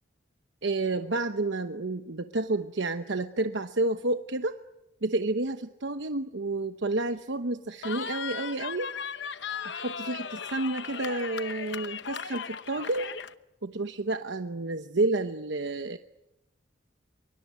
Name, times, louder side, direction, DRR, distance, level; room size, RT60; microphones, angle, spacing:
voice 1, 0.6-4.6 5.0-5.6 5.8-8.9 9.7-13.1 13.6-16.0, right 2 dB, 70° right, 8 dB, 1.0 m, -30 dB
Cheering, 7.8-13.3, left 7 dB, 65° left, 0.9 m, -37 dB
24.5 x 24.0 x 9.4 m, 0.88 s
head